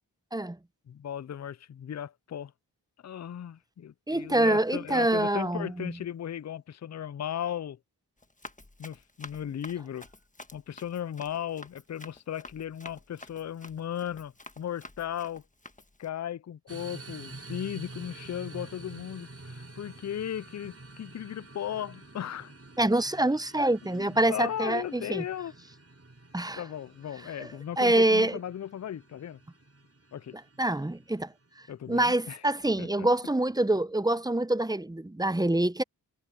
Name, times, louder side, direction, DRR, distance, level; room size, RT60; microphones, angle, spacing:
voice 1, 0.9-2.5 3.0-7.8 8.8-10.1 10.5-15.4 16.0-22.5 23.8-25.5 26.6-29.4 30.1-30.4 31.7-32.4 32.8-33.1, left 10 dB, 40° left, 0.5 m, -36 dB
voice 2, 4.1-5.9 22.8-25.2 26.3-26.6 27.4-27.5 27.8-28.4 30.6-31.3 31.9-35.8, right 1 dB, 10° right, 0.8 m, -26 dB
Run, 8.2-16.1, left 2 dB, 20° left, 1.5 m, -50 dB
sound 1, 16.7-31.8, right 2 dB, 35° right, 4.7 m, -48 dB
cardioid pair, 45°, 42 cm